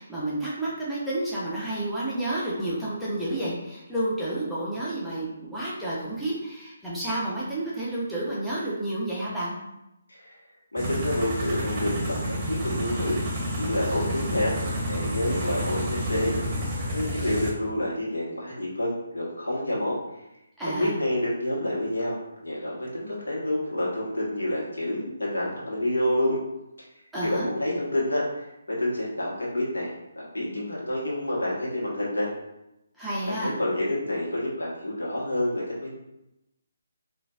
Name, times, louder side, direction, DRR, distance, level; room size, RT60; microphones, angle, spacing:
voice 1, 0.0-9.5 20.6-20.9 27.1-27.5 33.0-33.5, right 1 dB, ahead, -10 dB, 0.7 m, -30 dB
voice 2, 10.7-13.2 13.6-14.5 14.9-16.3 16.9-20.0 20.7-22.1 22.4-26.4 27.2-29.9 30.1-32.3 33.3-35.9, left 1 dB, 85° left, -5 dB, 1.2 m, -28 dB
sound 1, 10.8-17.5, equal, 25° right, 1.0 m, -30 dB
3.8 x 2.5 x 2.3 m, 0.90 s
figure-of-eight pair, 150°, 0 cm